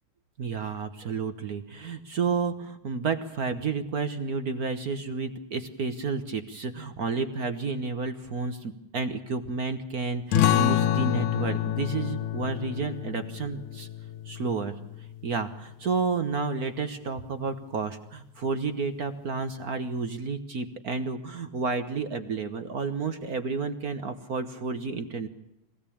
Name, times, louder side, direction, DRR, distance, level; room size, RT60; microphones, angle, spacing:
voice 1, 0.4-13.9 14.2-14.7 15.2-25.3, right 4 dB, 60° right, 9 dB, 0.9 m, -31 dB
sound 1, 10.3-15.5, left 11 dB, 90° left, 2.4 m, -28 dB
23.5 x 17.0 x 8.6 m, 0.87 s
omnidirectional pair, 3.3 m